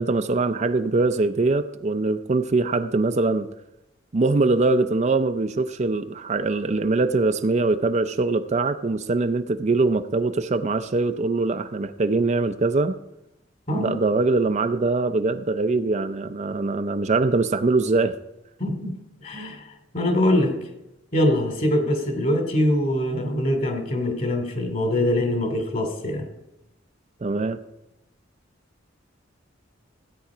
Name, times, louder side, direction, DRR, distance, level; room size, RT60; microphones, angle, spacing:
voice 1, 0.0-3.5 4.1-13.0 13.8-18.1 27.2-27.6, right 3 dB, 35° right, 9 dB, 0.5 m, -22 dB
voice 2, 18.6-20.6 21.1-26.3, left 1 dB, 45° left, 4 dB, 2.7 m, -23 dB
15.5 x 9.3 x 5.0 m, 0.90 s
head